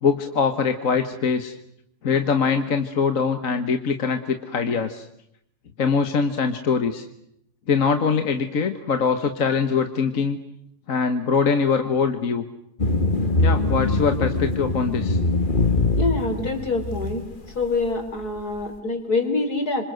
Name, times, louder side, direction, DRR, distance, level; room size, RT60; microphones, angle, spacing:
voice 1, 0.0-1.6 2.0-5.1 5.8-7.1 7.7-10.4 10.9-12.4 13.4-15.2, left 5 dB, 60° left, 7 dB, 1.7 m, -23 dB
sound 1, 12.8-17.4, left 2 dB, 35° left, 2.0 m, -22 dB
voice 2, 15.9-17.3 17.5-19.8, left 3 dB, 80° left, 5 dB, 4.7 m, -25 dB
27.0 x 26.0 x 7.8 m, 0.76 s
omnidirectional pair, 1.6 m